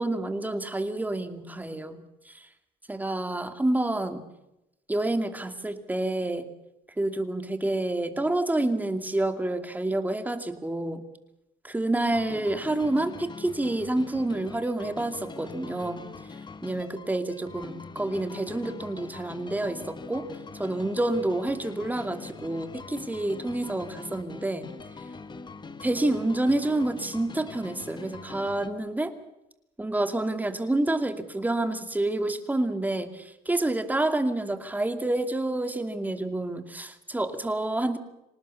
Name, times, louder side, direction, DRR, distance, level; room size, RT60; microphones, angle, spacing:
voice 1, 0.0-2.5 2.9-4.2 4.9-6.5 7.0-11.0 11.6-16.1 16.6-20.3 20.5-24.7 25.8-29.1 29.8-38.0, right 2 dB, 10° right, 8 dB, 2.5 m, -28 dB
sound 1, 12.1-28.7, left 4 dB, 25° left, 1.7 m, -43 dB
26.0 x 19.0 x 7.1 m, 0.89 s
cardioid pair, 110°, 17 cm